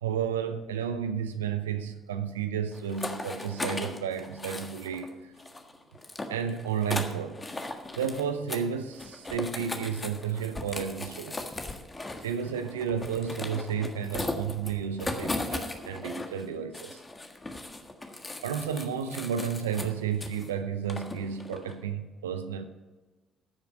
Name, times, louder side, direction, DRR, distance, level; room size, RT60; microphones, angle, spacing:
voice 1, 0.0-5.3 6.3-7.4 7.9-11.4 12.2-17.0 18.4-22.6, right 7 dB, 90° right, 9 dB, 0.6 m, -32 dB
sound 1, 2.7-5.1 5.4-8.2 8.5-8.7 8.9-16.4 16.7-20.5 20.9-21.8, left 2 dB, 25° left, 1.6 m, -37 dB
13.0 x 7.3 x 5.1 m, 1.2 s
hypercardioid pair, 50°, 0 cm